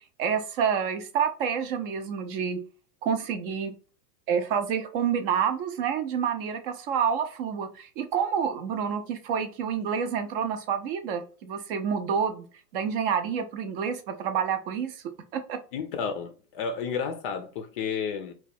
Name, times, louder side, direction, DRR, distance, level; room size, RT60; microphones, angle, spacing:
voice 1, 0.2-2.6 3.0-3.7 4.3-12.4 12.7-15.0 15.3-15.6, right 7 dB, 40° right, 0.5 m, -28 dB
voice 2, 15.7-18.3, left 6 dB, 40° left, 0.5 m, -31 dB
2.9 x 2.3 x 4.2 m
hypercardioid pair, 125°, 46 cm